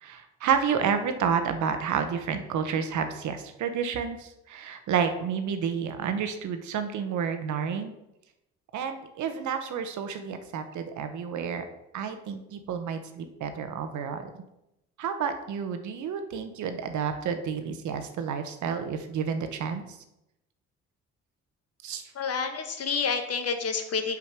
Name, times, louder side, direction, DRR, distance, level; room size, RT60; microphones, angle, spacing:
voice 1, 0.0-7.9 8.7-11.6 11.9-14.3 15.0-19.8 21.8-22.0, right 7 dB, 75° right, 8 dB, 1.1 m, -30 dB
voice 2, 22.1-24.2, left 5 dB, 55° left, 6 dB, 1.3 m, -29 dB
6.0 x 5.1 x 6.0 m, 0.88 s
cardioid pair, 90°, 30 cm